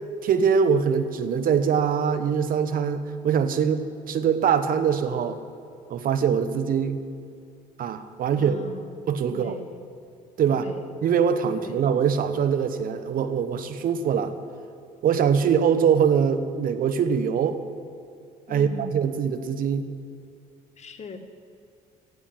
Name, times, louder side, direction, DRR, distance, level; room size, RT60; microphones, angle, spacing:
voice 1, 0.2-5.4 5.9-7.0 7.8-8.6 9.1-9.6 10.4-10.7 11.0-14.3 15.0-17.6 18.5-19.9, right 7 dB, 55° right, 10 dB, 1.1 m, -23 dB
voice 2, 8.3-9.8 10.5-10.9 11.5-11.8 18.5-19.0 20.8-21.2, left 2 dB, 40° left, 5 dB, 1.6 m, -41 dB
14.5 x 10.5 x 7.6 m, 2.4 s
hypercardioid pair, 60°, 17 cm